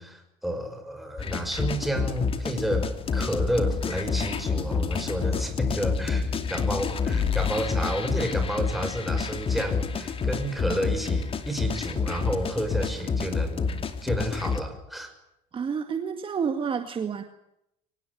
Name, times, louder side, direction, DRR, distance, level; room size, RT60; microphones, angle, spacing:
voice 1, 0.0-15.1, right 1 dB, ahead, 5 dB, 6.1 m, -31 dB
sound 1, 1.2-14.6, left 5 dB, 35° left, 2.7 m, -28 dB
voice 2, 15.5-17.2, right 6 dB, 30° right, 7 dB, 2.1 m, -29 dB
24.5 x 19.0 x 9.8 m, 0.80 s
cardioid pair, 115°, 17 cm